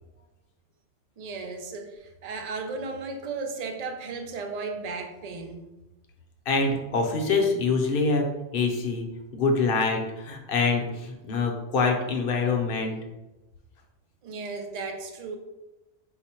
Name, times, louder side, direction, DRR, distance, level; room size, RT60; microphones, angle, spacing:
voice 1, 1.2-5.6 14.2-15.4, right 4 dB, 60° right, 4 dB, 0.4 m, -35 dB
voice 2, 6.5-8.2 8.5-9.0 9.3-13.0, left 4 dB, 55° left, 3 dB, 0.8 m, -25 dB
4.9 x 2.1 x 4.3 m, 1.0 s
omnidirectional pair, 1.3 m